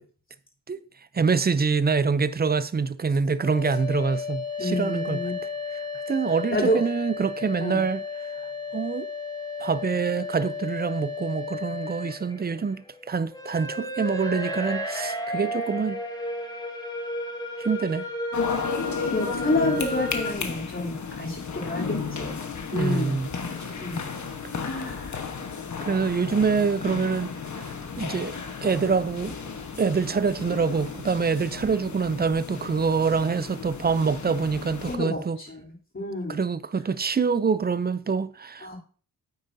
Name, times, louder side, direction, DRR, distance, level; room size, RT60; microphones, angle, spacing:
voice 1, 1.1-5.2 6.1-8.0 8.7-9.1 9.6-16.0 17.6-18.1 22.7-23.3 25.8-27.3 28.0-28.4 28.6-29.3 29.8-35.4 36.3-38.7, right 5 dB, 25° right, 0.5 m, -25 dB
sound 1, 3.4-20.3, left 2 dB, 10° left, 2.2 m, -33 dB
voice 2, 4.6-5.3 6.5-6.8 7.6-7.8 18.8-22.4 22.7-23.2 23.4-24.0 24.6-25.2 34.8-36.4 38.6-38.8, left 1 dB, 30° left, 3.2 m, -29 dB
sound 2, 18.3-35.0, left 5 dB, 50° left, 1.2 m, -34 dB
9.4 x 8.7 x 2.7 m
cardioid pair, 80°, 37 cm